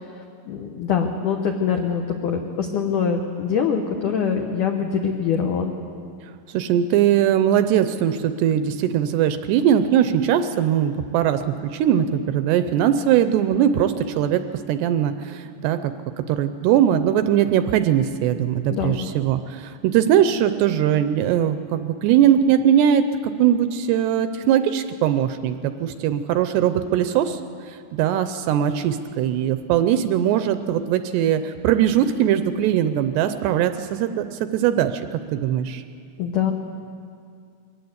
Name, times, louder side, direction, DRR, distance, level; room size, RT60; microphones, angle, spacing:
voice 1, 0.1-5.7 18.7-19.1 36.2-36.5, left 7 dB, 80° left, 3 dB, 1.8 m, -24 dB
voice 2, 6.5-14.4 14.7-23.0 23.4-27.4 27.7-35.8, right 10 dB, 80° right, 10 dB, 2.6 m, -20 dB
22.5 x 18.0 x 8.1 m, 2.2 s
omnidirectional pair, 5.3 m